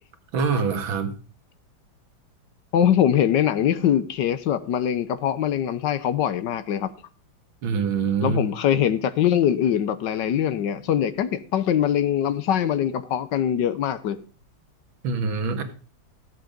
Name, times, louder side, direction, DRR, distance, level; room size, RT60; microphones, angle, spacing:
voice 1, 0.3-1.1 7.6-8.4 15.0-15.6, right 5 dB, 85° right, 2.2 m, -24 dB
voice 2, 2.7-6.9 8.2-14.2, left 9 dB, 70° left, 1.3 m, -22 dB
14.0 x 7.7 x 5.2 m
omnidirectional pair, 2.2 m